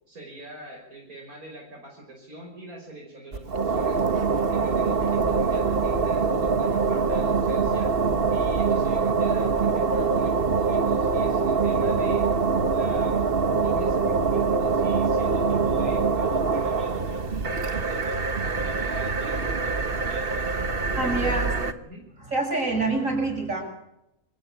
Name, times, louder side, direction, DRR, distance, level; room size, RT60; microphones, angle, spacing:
voice 1, 0.1-4.0 4.3-7.9 8.3-12.3 12.7-13.2 13.6-20.5 20.9-21.5 21.9-22.0, right 1 dB, 85° right, 0 dB, 6.0 m, -43 dB
sound 1, 3.3-21.7, right 4 dB, 45° right, 1.5 m, -24 dB
voice 2, 21.0-21.7 22.3-23.6, right 2 dB, 65° right, 2 dB, 8.5 m, -26 dB
27.5 x 17.0 x 8.7 m, 0.82 s
omnidirectional pair, 1.5 m